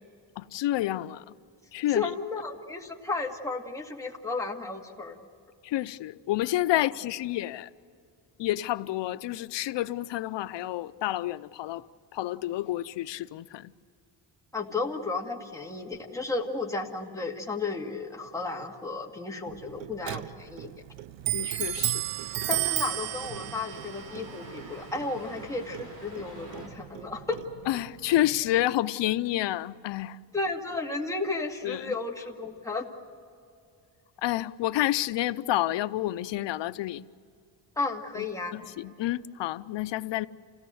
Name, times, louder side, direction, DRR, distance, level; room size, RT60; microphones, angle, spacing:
voice 1, 0.4-1.2 1.7-2.0 5.6-7.7 8.4-11.8 12.1-13.7 21.3-21.9 27.7-30.2 31.6-31.9 34.2-37.0 38.2-38.3 38.5-40.3, left 14 dB, 75° left, 0.7 m, -29 dB
voice 2, 1.9-5.2 6.7-6.8 14.5-20.7 22.5-27.4 30.3-32.9 37.8-38.6, left 3 dB, 5° left, 2.1 m, -33 dB
Clock, 19.5-28.7, right 15 dB, 85° right, 0.6 m, -35 dB
sound 1, 21.3-26.7, equal, 40° right, 6.3 m, -48 dB
27.5 x 17.0 x 7.9 m
cardioid pair, 125°, 43 cm